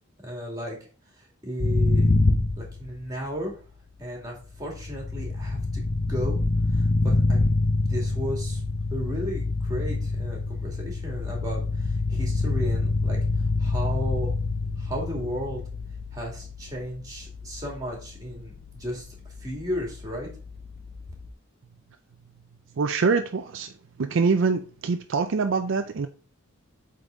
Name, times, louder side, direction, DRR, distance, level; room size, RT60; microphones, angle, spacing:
voice 1, 0.2-0.8 1.2-2.1 2.6-3.6 4.0-5.8 6.1-6.4 6.7-7.5 7.9-8.6 8.9-13.2 13.6-14.3 14.8-15.6 16.1-19.1 19.4-20.3, equal, 15° right, 2.3 m, -34 dB
sound 1, 1.6-3.3 4.4-21.3, left 3 dB, 45° left, 0.7 m, -27 dB
voice 2, 22.8-23.7 24.0-26.1, right 4 dB, 60° right, 0.4 m, -24 dB
8.0 x 4.0 x 3.8 m
head